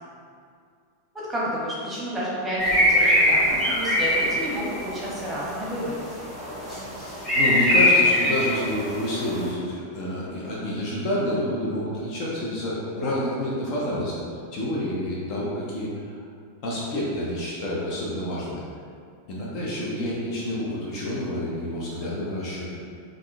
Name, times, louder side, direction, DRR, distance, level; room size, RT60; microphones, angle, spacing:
voice 1, 1.1-6.1, equal, 15° right, -7 dB, 0.9 m, -30 dB
sound 1, 2.6-9.5, left 1 dB, 15° left, 1.4 m, -23 dB
voice 2, 7.3-14.2 14.5-16.1 16.6-18.6 19.3-22.8, left 1 dB, 40° left, -5 dB, 0.6 m, -28 dB
3.6 x 2.4 x 2.2 m, 2.3 s
figure-of-eight pair, 90°, 0 cm